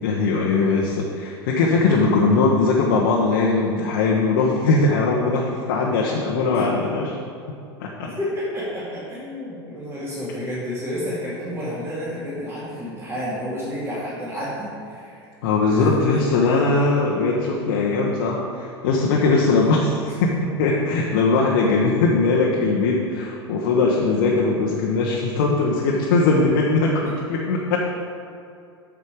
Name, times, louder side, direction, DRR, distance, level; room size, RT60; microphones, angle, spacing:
voice 1, 0.0-7.2 7.8-8.1 15.4-27.8, left 3 dB, 55° left, -2 dB, 1.0 m, -20 dB
voice 2, 8.0-15.2 15.7-16.2 16.7-16.8 19.4-19.5, equal, 20° right, -9 dB, 2.3 m, -30 dB
8.4 x 6.6 x 4.9 m, 2.5 s
figure-of-eight pair, 80°, 13 cm